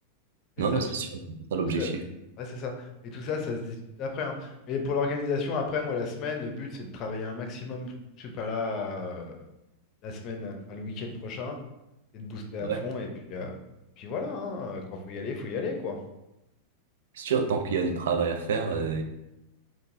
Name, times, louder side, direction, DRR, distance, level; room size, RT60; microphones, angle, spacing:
voice 1, 0.6-1.1 1.5-2.0 12.6-12.8 17.2-19.0, right 5 dB, 75° right, 6 dB, 0.4 m, -27 dB
voice 2, 2.4-9.4 10.0-11.6 12.1-13.5 14.0-16.0, left 4 dB, 45° left, 3 dB, 0.6 m, -33 dB
3.8 x 2.5 x 2.6 m, 0.89 s
hypercardioid pair, 110°, 0 cm